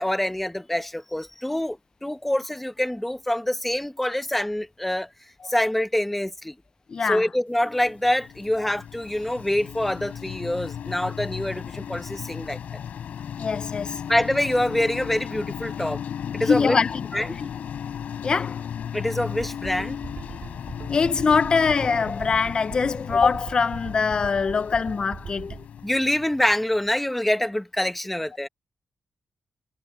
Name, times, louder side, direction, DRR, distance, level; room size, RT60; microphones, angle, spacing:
voice 1, 0.0-5.1 5.4-6.5 7.0-12.6 14.1-16.0 16.3-16.8 17.1-17.4 18.9-20.0 25.8-28.5, left 1 dB, 5° left, 1.0 m, -25 dB
voice 2, 6.9-7.2 13.4-14.0 16.5-17.0 17.4-17.5 18.2-18.7 20.9-25.6, left 5 dB, 35° left, 0.4 m, -23 dB
sound 1, 7.8-26.8, left 8 dB, 80° left, 7.5 m, -35 dB
sound 2, 19.3-25.7, right 6 dB, 50° right, 7.3 m, -41 dB
wide cardioid pair, 175°, 3 cm